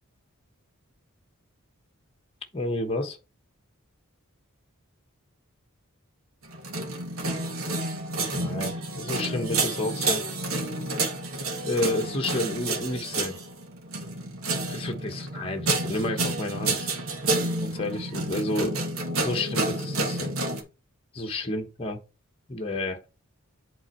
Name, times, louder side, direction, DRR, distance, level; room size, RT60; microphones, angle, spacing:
voice 1, 2.5-3.2 8.3-10.2 11.6-13.4 14.7-16.9 17.6-18.8 19.2-20.3 21.1-22.0 22.5-23.0, left 2 dB, 25° left, 1.1 m, -30 dB
sound 1, 6.5-20.6, right 2 dB, 70° right, 1.9 m, -29 dB
8.1 x 3.9 x 4.4 m
head